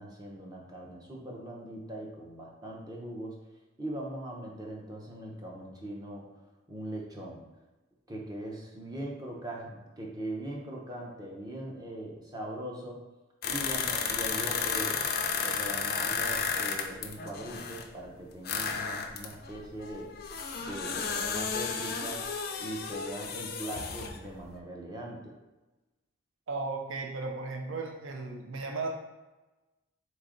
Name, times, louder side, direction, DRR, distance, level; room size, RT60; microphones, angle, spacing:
voice 1, 0.0-3.4 3.8-6.3 6.7-7.4 8.1-13.0 13.4-15.0 15.4-20.1 20.6-22.3 22.6-25.4, right 1 dB, 20° right, -1 dB, 0.7 m, -40 dB
sound 1, 13.4-17.8 18.4-24.2 24.5-24.6, left 5 dB, 45° left, 0.4 m, -33 dB
voice 2, 26.5-28.9, right 3 dB, 70° right, 2 dB, 0.5 m, -35 dB
4.0 x 3.2 x 3.8 m, 1.1 s
head